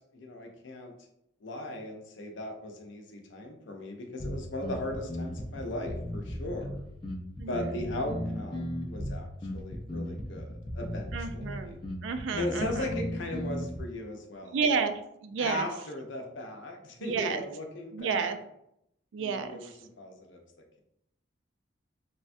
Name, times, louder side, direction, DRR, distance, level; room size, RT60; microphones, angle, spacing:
voice 1, 0.1-0.9 1.4-6.8 7.5-11.8 12.3-14.6 15.4-18.4 19.2-19.7 20.0-20.4, left 1 dB, 75° left, 3 dB, 0.6 m, -38 dB
sound 1, 4.2-13.8, left 1 dB, 25° left, 0.4 m, -36 dB
voice 2, 11.1-11.8 12.0-12.9 14.5-15.7 17.0-17.4 17.9-18.4 19.1-19.7, right 5 dB, 75° right, 9 dB, 0.3 m, -31 dB
3.3 x 2.2 x 2.5 m, 0.77 s
head